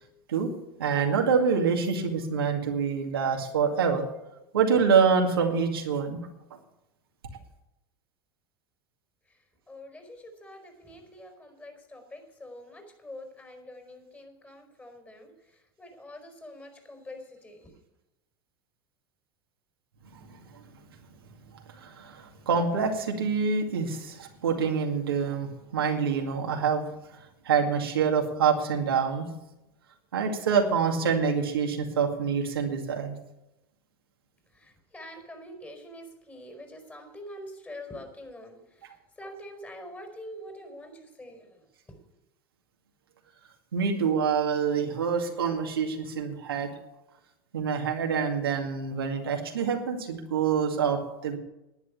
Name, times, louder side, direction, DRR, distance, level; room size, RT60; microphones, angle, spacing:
voice 1, 0.8-4.1 4.5-6.2 20.1-20.6 21.7-26.9 27.1-29.3 30.1-33.1 43.7-46.7 47.5-51.4, right 6 dB, 90° right, 2 dB, 2.2 m, -26 dB
voice 2, 9.3-17.7 34.5-42.1, left 1 dB, 15° left, 4 dB, 4.8 m, -45 dB
11.0 x 9.4 x 8.4 m, 0.91 s
hypercardioid pair, 100°, 12 cm